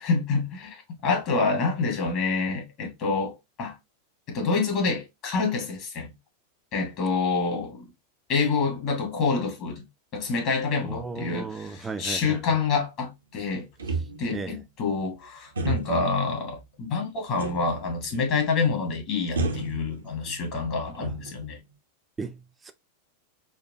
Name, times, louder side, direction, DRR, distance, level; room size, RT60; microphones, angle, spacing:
voice 1, 0.0-3.8 4.3-6.1 6.7-7.9 8.3-9.8 10.1-13.7 14.2-21.6, left 4 dB, 40° left, 1.6 m, -27 dB
voice 2, 10.8-12.4 14.3-14.6 21.0-21.1 22.2-22.7, right 4 dB, 15° right, 0.5 m, -35 dB
sound 1, 13.8-14.5 15.6-16.1 17.4-17.8 18.1-18.2 19.3-20.4 20.8-21.6, right 3 dB, 70° right, 0.7 m, -31 dB
4.3 x 2.4 x 2.6 m
figure-of-eight pair, 90°, 0 cm